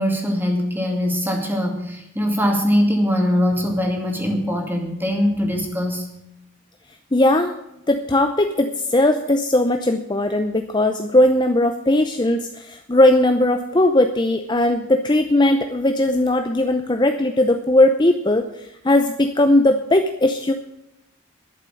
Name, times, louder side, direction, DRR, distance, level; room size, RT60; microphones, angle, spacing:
voice 1, 0.0-6.1, equal, 10° right, 1 dB, 2.4 m, -22 dB
voice 2, 7.1-7.5 7.9-20.5, left 1 dB, 20° left, 6 dB, 0.7 m, -18 dB
12.0 x 7.4 x 9.4 m, 0.84 s
head